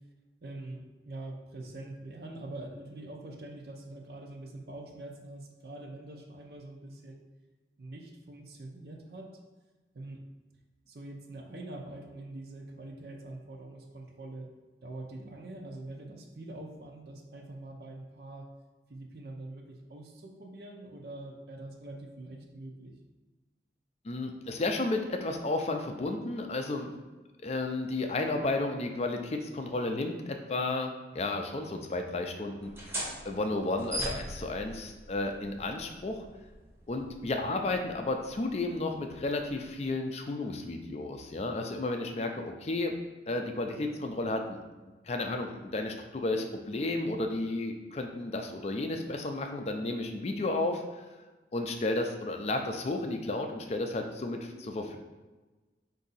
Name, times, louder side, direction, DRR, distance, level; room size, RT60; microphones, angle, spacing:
voice 1, 0.4-7.2 7.8-9.4 9.9-10.2 10.9-14.5 14.8-18.6 18.9-22.9 34.0-34.2, right 2 dB, 60° right, 2 dB, 0.6 m, -44 dB
voice 2, 24.0-26.9 27.4-32.7 33.2-36.2 36.9-42.9 43.3-44.6 45.1-51.0 51.5-55.0, left 2 dB, 35° left, 4 dB, 0.4 m, -32 dB
sound 1, 32.6-39.9, right 1 dB, 15° right, 0.8 m, -42 dB
4.8 x 2.7 x 4.0 m, 1.2 s
head